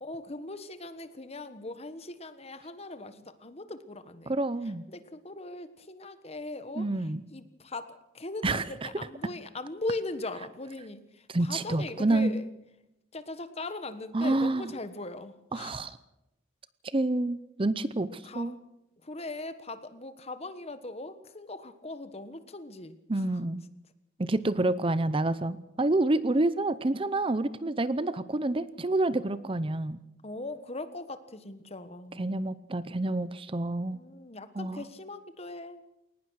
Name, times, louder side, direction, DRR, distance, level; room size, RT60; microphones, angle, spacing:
voice 1, 0.0-4.4 4.9-12.5 13.1-15.9 18.2-18.6 19.0-23.3 30.2-32.5 33.9-35.8, left 2 dB, 35° left, 11 dB, 1.3 m, -40 dB
voice 2, 4.3-4.8 6.8-7.2 8.4-8.9 11.3-12.3 14.1-14.7 15.5-15.9 16.9-18.5 23.1-23.6 24.2-30.0 32.2-34.0 34.6-34.8, right 2 dB, 30° right, 15 dB, 0.6 m, -28 dB
21.0 x 19.5 x 6.4 m, 0.89 s
head